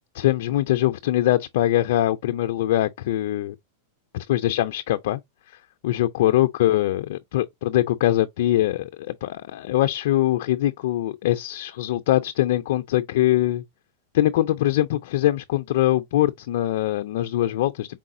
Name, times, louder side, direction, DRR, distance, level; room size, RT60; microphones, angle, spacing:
voice 1, 0.1-3.5 4.1-5.2 5.5-13.6 14.1-18.0, left 14 dB, 70° left, 0.3 m, -22 dB
4.7 x 3.6 x 2.5 m
hypercardioid pair, 120°, 0 cm